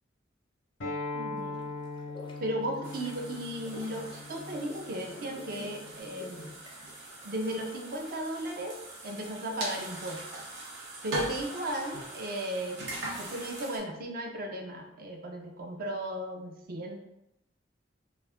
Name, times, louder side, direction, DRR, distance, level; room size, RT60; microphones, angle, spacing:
Acoustic guitar, 0.8-6.0, left 2 dB, 85° left, 0.7 m, -40 dB
voice 1, 1.1-1.6 2.4-6.5 7.2-8.8 9.0-10.4 11.0-12.8 13.2-17.0, right 1 dB, 50° right, 3 dB, 0.4 m, -36 dB
sound 1, 1.4-8.1, left 2 dB, 25° left, 0.4 m, -50 dB
sound 2, 2.8-13.8, right 2 dB, 80° right, 0.7 m, -41 dB
2.5 x 2.4 x 3.4 m, 0.84 s
head